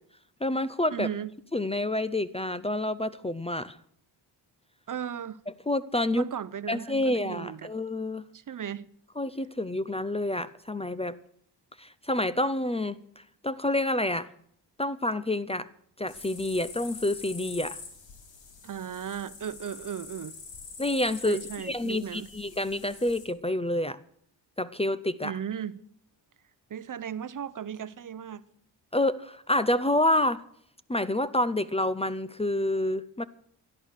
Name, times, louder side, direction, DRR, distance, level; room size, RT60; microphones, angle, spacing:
voice 1, 0.4-1.1 1.5-3.8 5.7-6.2 6.7-8.2 9.2-11.2 11.8-14.3 14.8-15.7 16.0-17.8 20.8-24.0 24.6-25.3 28.9-30.4 30.9-33.2, left 1 dB, 15° left, 0.6 m, -28 dB
voice 2, 0.9-1.3 4.9-5.4 6.1-7.7 8.3-8.9 18.6-20.3 21.2-22.3 25.2-25.8 26.7-28.4, right 8 dB, 45° right, 0.7 m, -36 dB
sound 1, 16.1-23.3, left 5 dB, 85° left, 3.4 m, -45 dB
17.5 x 12.0 x 6.6 m
cardioid pair, 100°, 44 cm